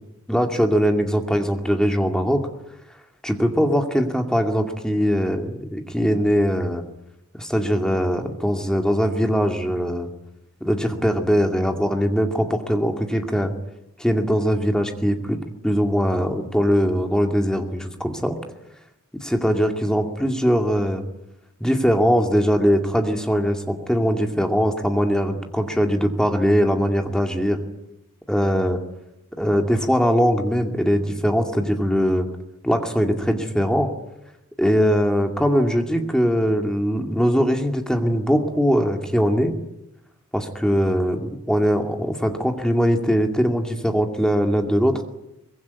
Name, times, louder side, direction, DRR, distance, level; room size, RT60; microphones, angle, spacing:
voice 1, 0.3-2.4 3.2-6.8 7.4-10.1 10.6-13.5 14.0-18.4 19.1-21.0 21.6-27.6 28.3-28.8 29.4-32.3 32.6-33.9 34.6-39.6 40.3-45.0, equal, 5° left, 4 dB, 2.3 m, -21 dB
23.5 x 21.5 x 9.6 m, 0.91 s
head